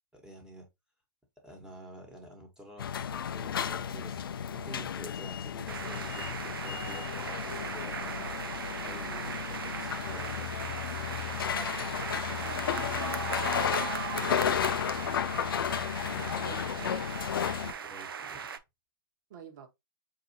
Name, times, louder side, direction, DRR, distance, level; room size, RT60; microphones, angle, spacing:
voice 1, 0.1-0.7 1.4-7.1 7.4-8.3 8.7-10.7 14.8-16.5 17.8-18.4, right 1 dB, 5° right, 1.3 m, -50 dB
sound 1, 2.8-17.7, left 8 dB, 75° left, 0.4 m, -33 dB
sound 2, 5.7-18.6, right 6 dB, 80° right, 0.5 m, -38 dB
voice 2, 11.5-13.9 16.4-16.9 17.6-17.8 19.3-19.7, right 6 dB, 55° right, 1.1 m, -48 dB
4.6 x 2.8 x 2.8 m
hypercardioid pair, 120°, 12 cm